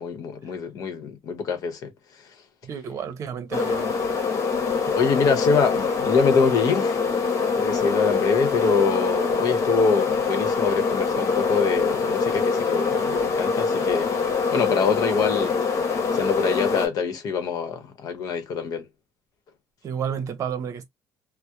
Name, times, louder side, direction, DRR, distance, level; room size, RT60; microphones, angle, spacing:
voice 1, 0.0-1.9 4.8-7.0 7.5-14.1 14.5-15.5 16.1-18.9, left 5 dB, 65° left, 0.9 m, -24 dB
voice 2, 2.6-4.0 19.8-20.9, right 7 dB, 50° right, 0.7 m, -31 dB
sound 1, 3.5-16.9, left 5 dB, 50° left, 1.1 m, -24 dB
2.8 x 2.1 x 2.3 m
cardioid pair, 115°, 7 cm